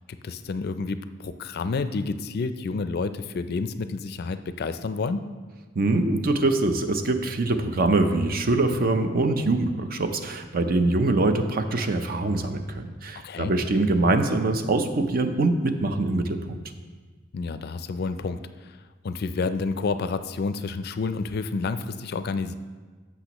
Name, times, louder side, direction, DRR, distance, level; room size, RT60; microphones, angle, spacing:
voice 1, 0.1-5.2 13.2-13.5 17.3-18.8 19.0-22.5, left 4 dB, 55° left, 11 dB, 0.4 m, -29 dB
voice 2, 5.7-16.6, right 2 dB, 50° right, 7 dB, 0.6 m, -24 dB
14.5 x 5.9 x 3.0 m, 1.4 s
head